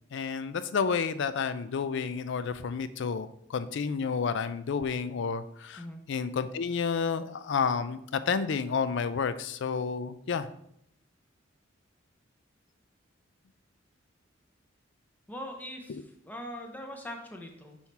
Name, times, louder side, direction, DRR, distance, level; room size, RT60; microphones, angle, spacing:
voice 1, 0.1-5.8 6.1-10.5, left 5 dB, 65° left, 13 dB, 0.4 m, -30 dB
voice 2, 15.3-17.8, equal, 10° left, 3 dB, 0.8 m, -41 dB
5.6 x 4.3 x 4.5 m, 0.73 s
head